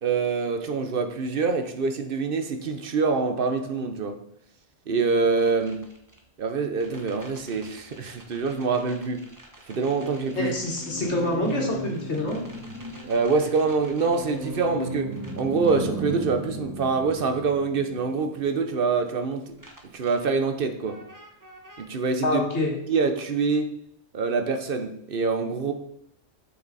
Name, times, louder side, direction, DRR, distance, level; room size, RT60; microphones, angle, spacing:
voice 1, 0.0-4.2 4.9-5.8 6.4-9.3 9.7-10.6 13.0-19.5 19.9-21.0 21.8-23.7 24.1-25.7, right 4 dB, 50° right, 6 dB, 1.0 m, -25 dB
sound 1, 5.4-6.2 6.8-19.0 19.6-20.1 20.9-21.8, right 1 dB, 15° right, 1.1 m, -37 dB
voice 2, 10.3-12.4 22.2-22.7, left 2 dB, 60° left, -1 dB, 2.2 m, -26 dB
8.0 x 5.9 x 4.1 m, 0.73 s
omnidirectional pair, 1.3 m